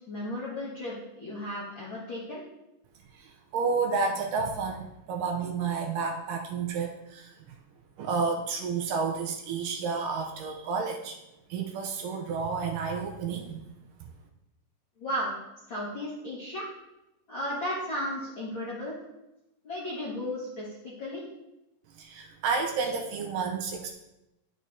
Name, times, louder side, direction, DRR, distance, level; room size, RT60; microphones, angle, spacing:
voice 1, 0.1-2.4 15.0-15.3 15.7-16.7 17.3-18.9 19.6-21.2, left 1 dB, 55° left, -7 dB, 1.3 m, -34 dB
voice 2, 3.2-7.6 8.0-11.2 11.5-13.6 22.0-23.9, right 5 dB, 80° right, 3 dB, 2.1 m, -31 dB
11.0 x 6.3 x 2.6 m, 0.93 s
omnidirectional pair, 4.2 m